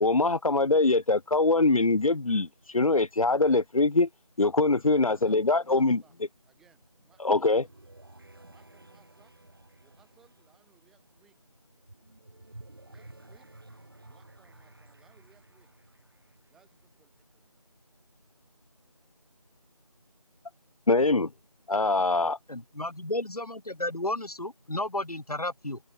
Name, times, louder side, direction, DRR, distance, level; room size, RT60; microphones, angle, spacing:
voice 1, 0.0-4.1 4.4-6.0 7.2-7.7 20.9-21.3 21.7-22.4, left 3 dB, 65° left, 0.8 m, -23 dB
voice 2, 5.0-6.2 6.4-7.7 8.5-9.4 9.8-11.4 12.8-13.5 14.0-15.7 16.5-17.5, right 8 dB, ahead, 4.7 m, -65 dB
sound 1, 6.6-17.4, right 2 dB, 40° right, 6.7 m, -54 dB
voice 3, 22.5-25.8, left 1 dB, 80° left, 2.6 m, -33 dB
figure-of-eight pair, 175°, 19 cm